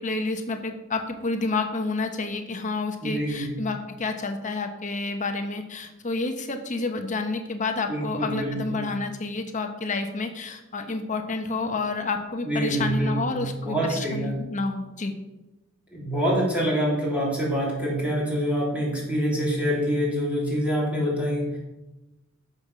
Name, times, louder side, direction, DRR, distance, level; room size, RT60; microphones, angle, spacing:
voice 1, 0.0-15.1, left 3 dB, 40° left, 5 dB, 1.0 m, -29 dB
voice 2, 3.0-3.6 7.9-8.9 12.4-14.4 15.9-21.6, equal, 5° right, -6 dB, 3.2 m, -26 dB
13.5 x 5.5 x 6.2 m, 1.0 s
head